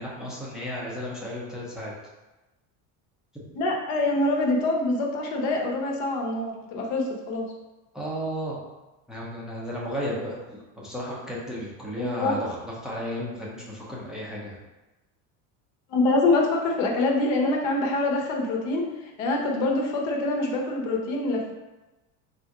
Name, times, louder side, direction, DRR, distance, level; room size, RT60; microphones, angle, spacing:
voice 1, 0.0-1.9 7.9-8.6 9.1-14.6, equal, ahead, -5 dB, 0.6 m, -33 dB
voice 2, 3.5-7.5 12.0-12.4 15.9-21.5, left 2 dB, 70° left, 0 dB, 1.0 m, -25 dB
3.6 x 2.7 x 4.5 m, 1.1 s
cardioid pair, 150°, 37 cm